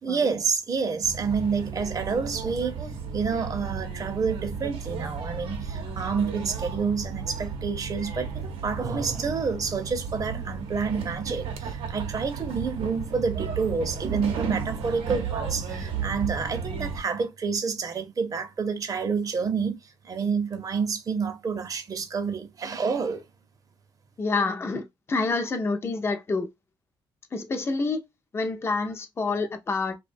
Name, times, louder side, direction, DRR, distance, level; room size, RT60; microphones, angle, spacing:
voice 1, 0.0-2.8 3.1-19.8 20.0-23.2, right 5 dB, 40° right, 0.6 m, -28 dB
sound 1, 1.0-17.0, right 5 dB, 90° right, 0.6 m, -34 dB
voice 2, 24.2-26.5 27.3-28.0 28.3-30.0, left 3 dB, 30° left, 0.4 m, -28 dB
2.5 x 2.2 x 2.5 m
cardioid pair, 95°, 9 cm